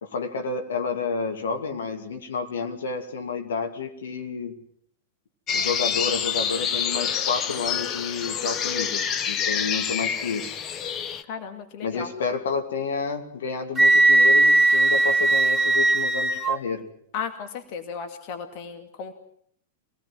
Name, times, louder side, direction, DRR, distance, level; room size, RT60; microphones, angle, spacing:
voice 1, 0.0-4.5 5.5-10.6 11.8-16.8, left 5 dB, 65° left, 5 dB, 2.6 m, -30 dB
sound 1, 5.5-11.2, left 7 dB, 30° left, 1.2 m, -27 dB
voice 2, 11.3-12.1 17.1-19.1, left 6 dB, 45° left, 6 dB, 2.3 m, -35 dB
Wind instrument woodwind instrument, 13.8-16.6, right 2 dB, 10° right, 2.9 m, -18 dB
25.5 x 18.5 x 7.7 m, 0.66 s
figure-of-eight pair, 95°, 0 cm